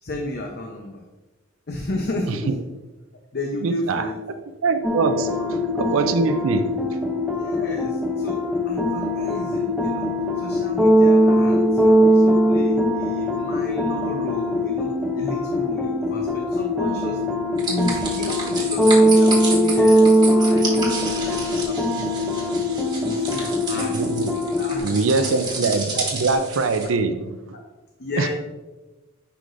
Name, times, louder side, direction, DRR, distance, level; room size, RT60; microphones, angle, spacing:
voice 1, 0.0-1.0 1.7-2.6 3.3-4.2 5.4-5.5 7.4-17.2 17.6-22.5 23.0-24.0 24.4-25.6 27.5-27.6 28.0-28.3, left 1 dB, 55° left, 2 dB, 0.7 m, -32 dB
voice 2, 3.6-4.0 4.6-5.4 5.8-6.8 23.7-24.4 24.8-27.3 28.2-28.3, right 4 dB, 80° right, 8 dB, 0.5 m, -23 dB
sound 1, 4.8-24.8, equal, 5° right, 0.6 m, -20 dB
sound 2, 17.6-26.9, right 3 dB, 20° right, 1.5 m, -31 dB
10.0 x 4.9 x 2.5 m, 1.1 s
head